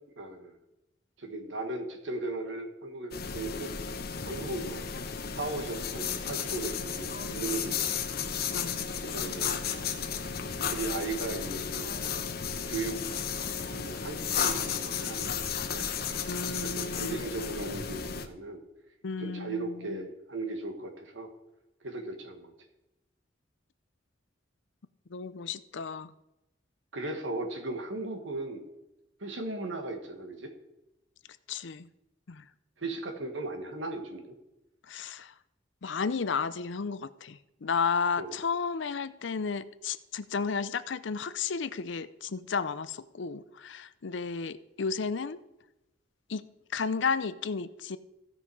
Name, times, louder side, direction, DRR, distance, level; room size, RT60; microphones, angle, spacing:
voice 1, 0.2-0.5 1.2-4.8 5.3-8.1 9.0-9.6 10.7-12.2 12.7-13.0 13.7-15.8 16.6-18.6 19.2-21.3 21.8-22.5 26.9-28.7 29.2-30.5 32.8-34.4 38.2-38.4, right 2 dB, 85° right, 5 dB, 1.7 m, -37 dB
sound 1, 3.1-18.3, left 7 dB, 55° left, 0.9 m, -33 dB
voice 2, 8.5-8.9 16.3-17.2 19.0-20.0 25.1-26.1 31.5-31.9 32.3-32.5 34.9-35.3 35.8-45.4 46.3-46.4 46.7-48.0, left 5 dB, 75° left, 14 dB, 0.6 m, -33 dB
16.0 x 5.6 x 4.8 m, 0.95 s
head